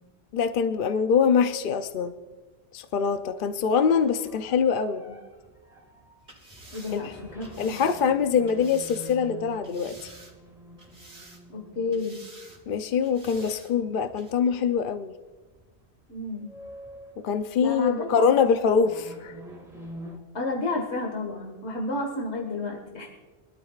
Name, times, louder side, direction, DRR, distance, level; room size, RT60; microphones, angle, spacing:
voice 1, 0.3-2.1 2.7-5.0 6.9-7.1 7.6-10.1 12.7-15.1 17.2-19.4, left 6 dB, 55° left, 9 dB, 0.7 m, -24 dB
sound 1, 3.6-14.3 14.7-14.9 15.4-15.8 16.1-20.2, right 1 dB, ahead, 2.5 m, -47 dB
sound 2, 6.2-9.2 9.6-10.5 10.8-11.6 11.9-12.6 13.0-13.7 14.2-14.3, right 2 dB, 45° right, 2.4 m, -50 dB
voice 2, 6.7-7.8 11.5-12.2 13.8-13.9 16.1-16.5 17.6-18.3 20.3-23.1, left 2 dB, 70° left, 1 dB, 1.8 m, -31 dB
23.5 x 12.5 x 2.4 m, 1.3 s
omnidirectional pair, 1.2 m